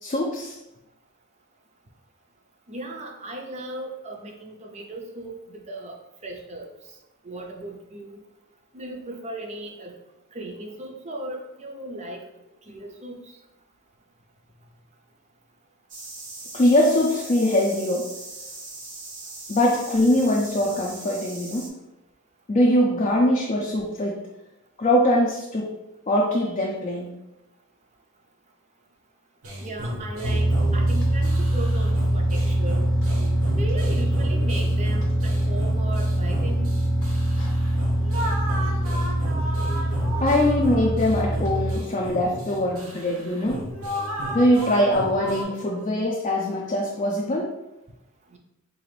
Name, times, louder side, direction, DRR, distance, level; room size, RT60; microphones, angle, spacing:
voice 1, 0.0-0.6 16.5-18.1 19.5-21.7 22.5-24.2 24.8-25.7 26.1-27.1 40.2-43.6 44.3-47.5, left 1 dB, 35° left, -2 dB, 0.4 m, -22 dB
voice 2, 2.7-6.0 6.2-6.7 7.2-8.2 8.7-9.9 10.3-12.2 12.7-13.2 29.6-32.8 33.5-36.7 48.3-48.4, right 1 dB, 35° right, 2 dB, 0.5 m, -37 dB
sound 1, 15.9-21.7, right 2 dB, 60° right, 0.8 m, -40 dB
sound 2, 29.4-45.4, equal, 90° right, 0.8 m, -34 dB
sound 3, 30.2-41.8, right 1 dB, 65° left, 0.7 m, -23 dB
3.8 x 2.5 x 3.2 m, 0.91 s
head